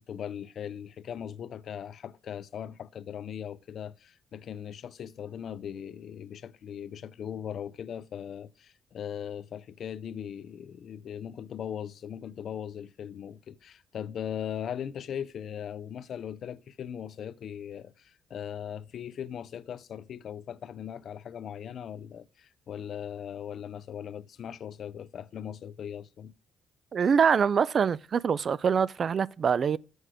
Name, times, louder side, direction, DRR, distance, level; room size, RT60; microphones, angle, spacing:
voice 1, 0.0-26.3, left 9 dB, 65° left, 0.5 m, -39 dB
voice 2, 26.9-29.8, right 6 dB, 50° right, 0.3 m, -24 dB
7.9 x 6.0 x 4.8 m
cardioid pair, 90°, 0 cm